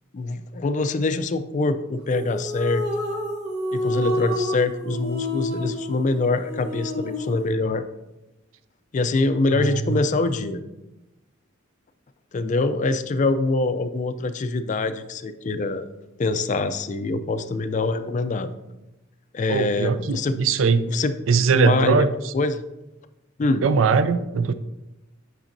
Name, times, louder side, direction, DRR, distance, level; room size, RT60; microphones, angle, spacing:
voice 1, 0.1-2.8 3.7-7.9 8.9-10.6 12.3-15.9 16.2-18.5 19.3-20.4 20.9-21.1 21.5-22.1 22.3-22.6 23.4-23.6, left 3 dB, 40° left, 11 dB, 0.4 m, -24 dB
sound 1, 2.1-7.4, left 1 dB, 55° right, 1.1 m, -29 dB
voice 2, 19.5-20.9 21.3-22.3 23.6-24.5, right 5 dB, 75° right, 13 dB, 0.4 m, -21 dB
8.7 x 5.4 x 2.6 m, 1.0 s
head